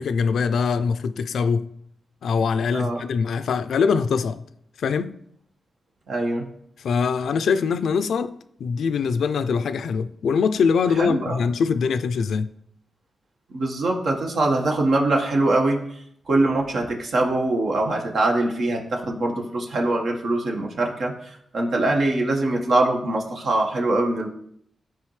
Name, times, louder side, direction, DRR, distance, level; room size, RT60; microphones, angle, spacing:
voice 1, 0.0-1.7 2.2-4.4 4.8-5.2 6.8-12.5, left 5 dB, 85° left, 0.4 m, -23 dB
voice 2, 6.1-6.5 11.0-11.4 13.5-15.8 16.3-24.3, right 2 dB, 70° right, 1.6 m, -23 dB
13.0 x 4.6 x 3.2 m
cardioid pair, 75°, 0 cm